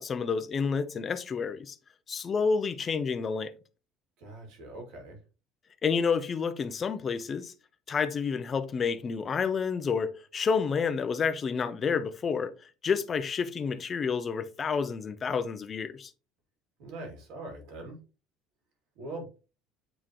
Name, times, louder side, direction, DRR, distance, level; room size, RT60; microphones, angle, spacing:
voice 1, 0.0-1.8 2.1-3.5 5.8-7.5 7.9-12.5 12.8-16.1, left 5 dB, 25° left, 0.6 m, -29 dB
voice 2, 4.2-5.2 16.8-18.0 19.0-19.3, right 2 dB, 65° right, 2.5 m, -42 dB
8.8 x 3.7 x 3.0 m
cardioid pair, 160°, 0 cm